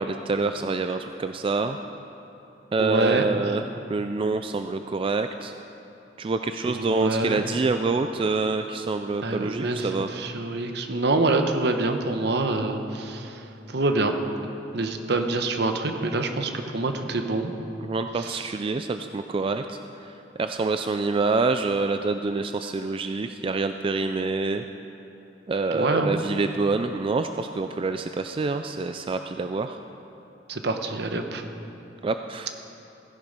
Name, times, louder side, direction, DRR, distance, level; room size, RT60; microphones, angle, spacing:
voice 1, 0.0-1.8 2.7-3.6 3.9-5.5 6.2-10.1 17.8-24.6 25.5-29.8 32.0-32.5, right 3 dB, 30° right, 8 dB, 0.3 m, -26 dB
voice 2, 2.8-3.2 6.6-7.4 9.2-13.4 13.7-14.2 14.7-17.5 18.2-18.5 25.7-26.2 30.5-31.4, right 2 dB, 65° right, 6 dB, 1.0 m, -26 dB
16.0 x 10.5 x 5.2 m, 3.0 s
head